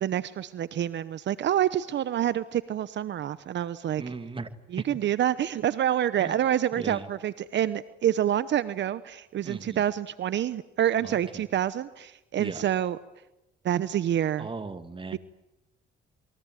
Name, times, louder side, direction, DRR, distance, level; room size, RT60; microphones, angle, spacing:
voice 1, 0.0-4.0 4.7-13.0 13.6-14.5 15.1-15.2, right 11 dB, 65° right, 15 dB, 1.0 m, -27 dB
voice 2, 4.0-4.5 6.2-6.4 6.8-7.1 9.4-9.8 11.1-11.4 12.4-12.6 14.4-15.2, right 4 dB, 25° right, 11 dB, 2.1 m, -37 dB
28.0 x 22.5 x 9.3 m, 0.92 s
cardioid pair, 90°, 20 cm